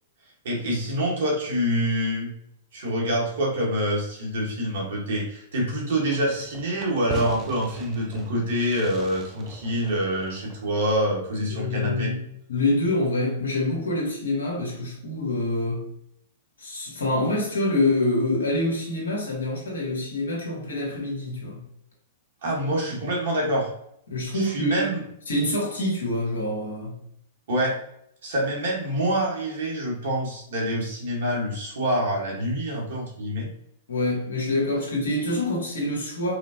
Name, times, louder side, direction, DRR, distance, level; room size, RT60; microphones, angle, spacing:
voice 1, 0.4-2.3 2.7-12.1 22.4-23.7 24.3-25.0 27.5-27.8 28.2-33.5, equal, 70° right, -2 dB, 1.4 m, -26 dB
Fireworks, 6.1-11.3, right 2 dB, 25° right, 0.5 m, -42 dB
voice 2, 11.5-12.2 12.5-15.8 16.6-21.6 24.1-25.0 25.3-26.9 33.9-36.3, left 1 dB, 85° left, -2 dB, 1.3 m, -26 dB
4.8 x 2.0 x 2.8 m, 0.72 s
hypercardioid pair, 115°, 0 cm